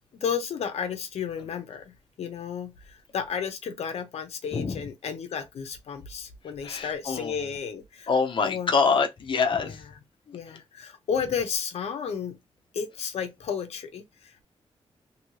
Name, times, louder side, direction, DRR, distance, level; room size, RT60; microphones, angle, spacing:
voice 1, 0.1-8.1 8.4-8.7 9.6-9.8 10.3-12.4 12.7-14.4, left 7 dB, 85° left, 0.6 m, -33 dB
voice 2, 6.6-7.5 8.1-9.8 10.3-10.4, left 5 dB, 50° left, 0.6 m, -25 dB
2.7 x 2.7 x 3.1 m
wide cardioid pair, 140°, 11 cm